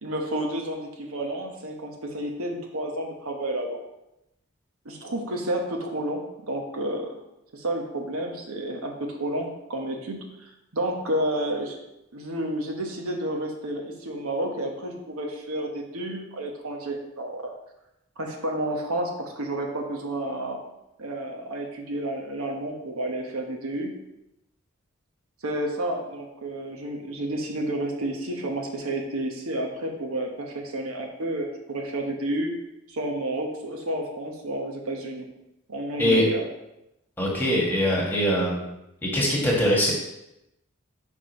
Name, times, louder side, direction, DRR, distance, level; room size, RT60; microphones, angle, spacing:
voice 1, 0.0-3.8 4.8-7.1 7.5-11.8 12.1-17.5 18.2-20.6 21.0-23.9 25.4-32.5 32.9-35.3 35.7-36.4, right 1 dB, 75° right, 2 dB, 1.1 m, -30 dB
voice 2, 37.2-38.7 39.0-39.9, equal, 10° left, -4 dB, 1.5 m, -22 dB
5.4 x 4.9 x 5.2 m, 0.89 s
head